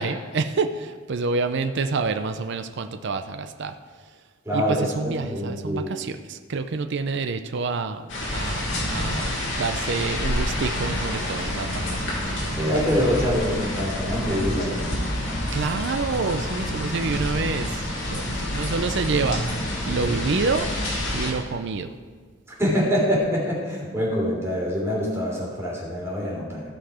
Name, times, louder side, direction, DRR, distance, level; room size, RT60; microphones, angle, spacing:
voice 1, 0.0-3.8 4.5-8.0 8.3-13.4 15.5-19.4 19.9-20.7 21.1-21.9, right 4 dB, 65° right, 8 dB, 0.5 m, -28 dB
voice 2, 4.4-4.8 5.0-5.8 12.6-15.1 22.6-26.6, equal, 15° right, -5 dB, 3.4 m, -25 dB
sound 1, 8.1-21.3, left 1 dB, 65° left, 2.5 m, -28 dB
16.0 x 5.8 x 4.9 m, 1.5 s
head